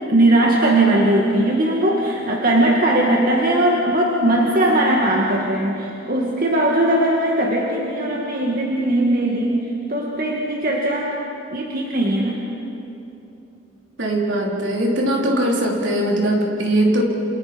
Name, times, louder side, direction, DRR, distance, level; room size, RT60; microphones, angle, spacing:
voice 1, 0.1-9.6 9.9-11.2 11.5-12.5, right 1 dB, 50° right, -2 dB, 2.2 m, -19 dB
voice 2, 14.0-17.0, right 1 dB, 70° right, -1 dB, 4.1 m, -20 dB
28.5 x 27.5 x 5.4 m, 2.9 s
head